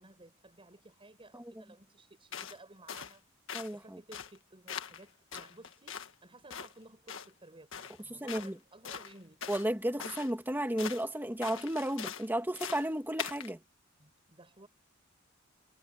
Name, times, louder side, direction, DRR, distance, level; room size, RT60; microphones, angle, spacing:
voice 1, 0.0-3.3 3.7-9.5 14.0-14.7, right 2 dB, 25° right, 5.3 m, -56 dB
sound 1, 2.3-2.6 2.9-3.2 3.5-3.7 4.1-4.4 4.7-5.0 5.3-6.1 6.5-6.7 7.1-7.3 7.7-8.0 8.3-8.5 8.8-9.7 10.0-10.3 10.8-11.0 11.4-12.3 12.6-12.9 13.2-13.5, left 8 dB, 70° left, 1.7 m, -42 dB
voice 2, 3.5-4.0 8.1-8.6 9.5-13.6, right 1 dB, 10° right, 2.1 m, -33 dB
head